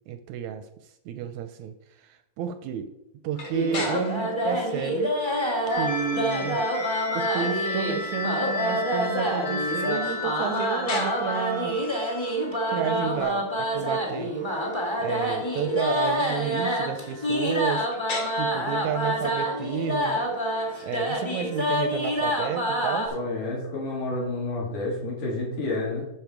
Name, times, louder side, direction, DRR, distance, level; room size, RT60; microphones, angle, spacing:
voice 1, 0.1-0.7 1.1-2.9 3.2-5.2 5.7-6.7 7.1-11.8 12.7-14.3 15.0-17.9 18.4-20.2 20.8-23.1, right 8 dB, 80° right, 9 dB, 1.7 m, -31 dB
sound 1, 3.3-23.1, left 3 dB, 60° left, 3.4 m, -43 dB
sound 2, 3.5-23.1, equal, 20° left, 0.7 m, -27 dB
sound 3, 5.7-13.2, left 2 dB, 40° left, 1.7 m, -33 dB
voice 2, 23.1-26.0, left 2 dB, 80° left, -3 dB, 4.2 m, -29 dB
10.5 x 6.1 x 4.6 m, 0.90 s
omnidirectional pair, 3.6 m